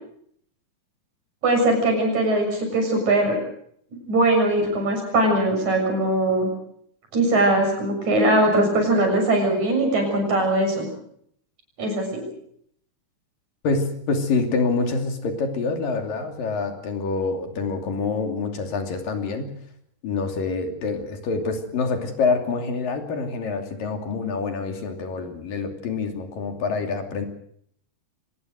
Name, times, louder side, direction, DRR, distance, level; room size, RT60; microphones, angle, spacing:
voice 1, 1.4-3.4 4.1-6.5 7.1-10.9 11.8-12.2, right 1 dB, 55° right, 3 dB, 8.2 m, -21 dB
voice 2, 13.6-19.5 20.0-27.3, left 4 dB, 80° left, 5 dB, 4.5 m, -26 dB
25.0 x 20.0 x 6.4 m, 0.66 s
omnidirectional pair, 3.9 m